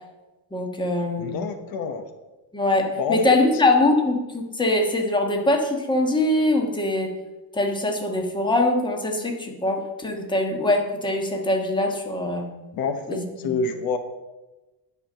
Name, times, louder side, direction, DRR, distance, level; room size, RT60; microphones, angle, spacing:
voice 1, 0.5-1.4 2.5-7.1 7.5-12.5 13.1-13.5, left 2 dB, 10° left, 2 dB, 1.4 m, -23 dB
voice 2, 1.2-2.0 3.0-3.4 12.7-14.0, left 5 dB, 65° left, 8 dB, 1.1 m, -27 dB
10.5 x 5.5 x 7.5 m, 1.1 s
cardioid pair, 155°, 38 cm